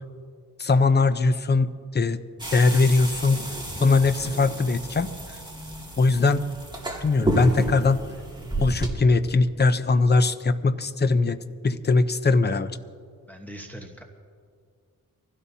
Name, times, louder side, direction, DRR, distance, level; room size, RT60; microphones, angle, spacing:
voice 1, 0.6-2.2 2.5-3.4 3.8-5.1 6.0-6.5 7.0-8.0 8.6-11.4 11.6-12.7, left 3 dB, 30° left, 11 dB, 0.7 m, -21 dB
sound 1, 2.4-8.9, right 1 dB, 10° right, 2.5 m, -31 dB
voice 2, 13.3-14.0, equal, 5° left, 1 dB, 1.1 m, -41 dB
24.5 x 16.5 x 2.8 m, 2.1 s
wide cardioid pair, 100°, 35 cm